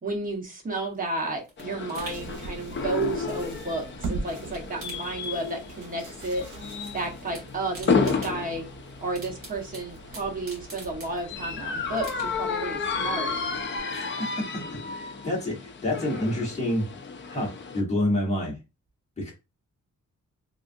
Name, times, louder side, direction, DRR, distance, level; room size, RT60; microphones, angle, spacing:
voice 1, 0.0-6.5 6.9-8.7 9.0-13.4, right 2 dB, 25° right, 0.9 m, -32 dB
sound 1, 0.8-4.0 4.3-5.9 6.1-6.9 7.2-11.5 12.0-12.6 13.0-13.1, right 1 dB, 45° right, 1.9 m, -47 dB
sound 2, 1.6-17.8, left 4 dB, 40° left, 0.4 m, -32 dB
sound 3, 2.0-13.8, right 3 dB, 75° right, 0.9 m, -42 dB
voice 2, 13.9-16.8 17.3-18.6 19.2-19.3, left 1 dB, 20° left, 1.1 m, -28 dB
3.6 x 2.4 x 2.5 m
wide cardioid pair, 170°, 31 cm